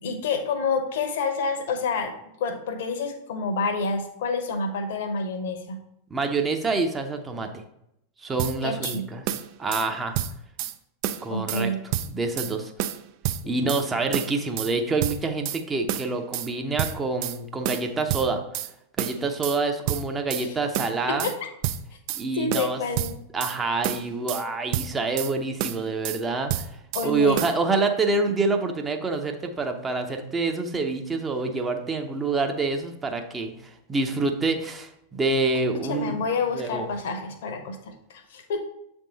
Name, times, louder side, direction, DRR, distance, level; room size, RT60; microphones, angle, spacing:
voice 1, 0.0-2.1 2.4-5.8 8.6-9.0 11.3-11.8 13.4-13.5 20.3-20.6 21.1-21.5 22.3-23.2 26.9-27.4 35.8-38.6, left 4 dB, 55° left, 7 dB, 0.8 m, -28 dB
voice 2, 6.1-7.6 8.2-9.2 9.6-10.2 11.2-11.7 12.1-12.7 13.5-18.4 19.0-21.3 22.2-22.8 23.3-26.7 27.0-33.5 33.9-36.2 36.5-36.9, right 3 dB, 15° right, 5 dB, 0.7 m, -26 dB
sound 1, 8.4-9.0 9.3-9.9 10.1-10.7 11.0-11.6 11.9-12.5 12.8-13.8 14.1-14.7 15.0-15.6 15.9-16.5 16.8-17.4 17.6-18.7 19.0-19.6 19.9-20.5 20.7-21.4 21.6-22.2 22.5-23.6 23.8-24.4 24.7-25.3 25.6-26.2 26.5-27.1 27.4-27.6, right 12 dB, 45° right, 0.3 m, -29 dB
7.4 x 3.6 x 4.0 m, 0.79 s
figure-of-eight pair, 90°, 0 cm